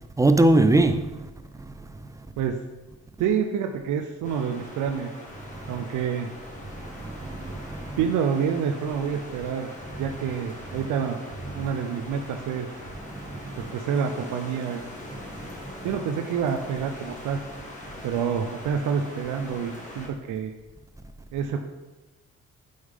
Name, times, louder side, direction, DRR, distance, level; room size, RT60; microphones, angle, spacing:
voice 1, 0.2-1.3 1.8-1.9 5.5-5.7 6.7-8.0 11.5-11.6 13.1-13.7 15.3-15.6, right 2 dB, 10° right, 0.4 m, -23 dB
voice 2, 3.2-5.1 5.7-6.3 8.0-9.7 10.0-11.2 11.5-12.7 13.6-14.8 15.8-17.4 18.0-20.5 21.3-21.6, right 7 dB, 80° right, 0.6 m, -27 dB
sound 1, 4.2-20.1, left 1 dB, 25° left, 1.6 m, -42 dB
6.3 x 5.6 x 3.6 m
cardioid pair, 90°, 30 cm